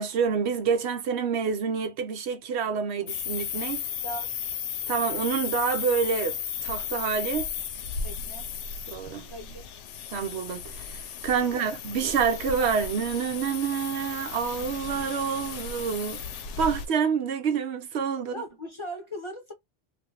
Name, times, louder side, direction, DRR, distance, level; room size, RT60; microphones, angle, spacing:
voice 1, 0.0-3.8 4.9-6.4 6.6-7.5 8.9-9.3 10.1-16.2 16.6-18.3, right 6 dB, 70° right, 0.9 m, -27 dB
sound 1, 3.1-16.9, left 7 dB, 85° left, 0.9 m, -35 dB
voice 2, 8.0-8.5 9.2-9.7 11.4-11.7 18.2-19.5, right 1 dB, 30° left, 0.7 m, -39 dB
2.6 x 2.5 x 2.9 m
omnidirectional pair, 1.2 m